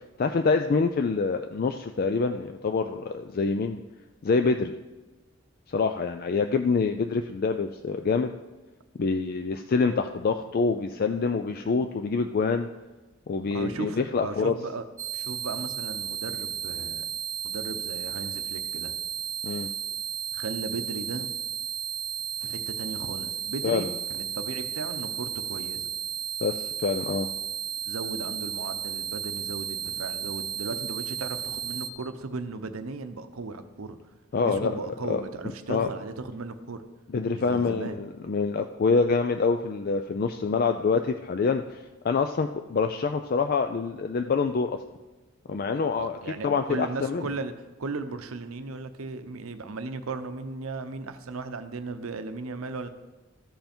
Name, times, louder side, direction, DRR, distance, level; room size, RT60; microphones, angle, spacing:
voice 1, 0.2-3.8 4.2-4.7 5.7-8.3 9.0-12.7 13.3-14.5 19.4-19.7 23.6-23.9 26.4-27.3 34.3-34.8 35.0-35.2 35.7-35.9 37.1-44.8 45.5-46.2 46.4-47.3, left 4 dB, 45° left, 7 dB, 0.4 m, -26 dB
voice 2, 13.5-14.8 15.1-17.1 17.4-18.9 20.3-21.3 22.4-25.9 27.9-34.0 34.4-36.8 37.3-38.0 45.9-47.5 47.8-52.9, right 3 dB, 85° right, 9 dB, 0.7 m, -36 dB
sound 1, 15.0-31.9, right 8 dB, 15° right, 0.8 m, -34 dB
13.5 x 5.6 x 4.4 m, 1.2 s
head